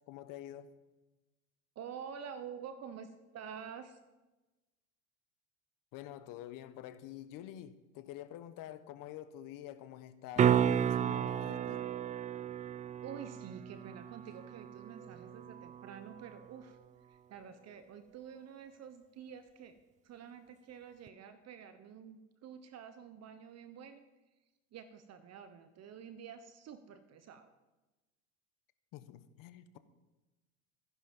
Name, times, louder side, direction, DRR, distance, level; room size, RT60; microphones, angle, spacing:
voice 1, 0.1-0.7 5.9-11.9 28.9-29.8, left 12 dB, 55° left, 1.2 m, -48 dB
voice 2, 1.7-3.1 3.3-4.0 13.0-16.8 17.1-19.8 20.0-24.0 24.7-27.5, right 7 dB, 40° right, 1.1 m, -48 dB
sound 1, 10.4-16.4 21.1-21.2, right 9 dB, 20° right, 0.4 m, -33 dB
14.0 x 10.5 x 5.4 m
supercardioid pair, 100°, 39 cm